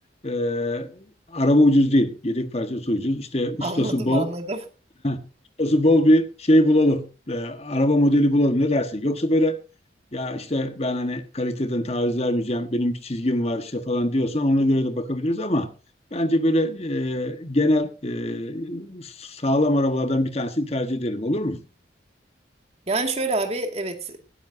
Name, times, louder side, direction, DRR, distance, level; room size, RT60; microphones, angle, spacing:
voice 1, 0.2-4.3 5.0-5.2 5.6-9.6 10.1-15.7 16.1-21.6, left 1 dB, 35° left, 1.4 m, -22 dB
voice 2, 3.6-4.6 22.9-24.2, right 2 dB, 35° right, 2.2 m, -27 dB
19.0 x 13.0 x 2.7 m
head